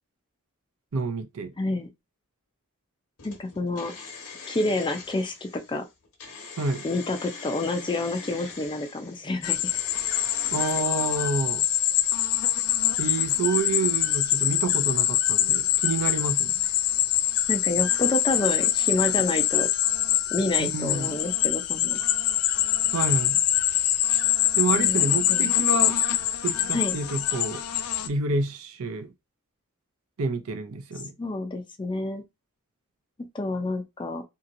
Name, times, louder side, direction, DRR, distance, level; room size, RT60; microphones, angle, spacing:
voice 1, 0.9-1.5 6.6-6.9 10.5-11.6 13.0-16.6 20.6-21.1 22.9-23.4 24.6-25.9 26.4-27.6 28.0-29.1 30.2-31.1, right 3 dB, 70° right, 0.5 m, -28 dB
voice 2, 1.6-1.9 3.2-3.9 4.5-5.8 6.8-9.8 17.5-19.7 20.3-22.0 24.8-25.5 26.7-26.9 31.2-32.2 33.3-34.2, left 2 dB, 20° left, 0.4 m, -29 dB
sound 1, 3.2-10.8, left 5 dB, 65° left, 1.0 m, -43 dB
sound 2, 9.4-28.1, left 12 dB, 85° left, 0.4 m, -24 dB
2.8 x 2.8 x 2.6 m
head